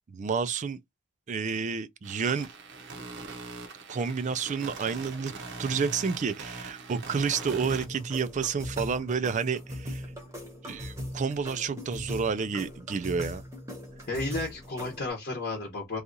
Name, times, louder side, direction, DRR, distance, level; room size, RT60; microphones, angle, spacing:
voice 1, 0.1-0.8 1.3-2.5 3.9-5.3 5.6-10.0 10.6-13.4, right 5 dB, 35° right, 0.3 m, -30 dB
sound 1, 2.0-7.9, right 4 dB, 50° right, 0.7 m, -42 dB
sound 2, 7.1-15.1, left 1 dB, 15° right, 0.9 m, -40 dB
voice 2, 14.1-16.0, left 2 dB, 40° left, 0.9 m, -33 dB
2.8 x 2.4 x 3.8 m
head